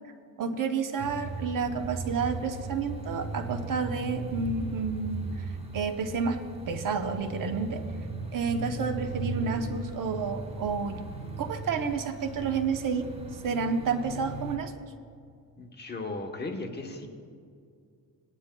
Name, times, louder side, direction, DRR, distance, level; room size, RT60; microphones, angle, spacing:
voice 1, 0.4-6.4 6.7-7.8 8.3-11.0 11.4-13.1 13.4-14.7, right 5 dB, 55° right, 6 dB, 0.9 m, -30 dB
sound 1, 1.0-14.6, right 3 dB, 15° right, 1.0 m, -37 dB
voice 2, 15.6-17.1, left 2 dB, 25° left, 3 dB, 1.0 m, -36 dB
19.0 x 9.8 x 2.2 m, 2.2 s
cardioid pair, 125°, 39 cm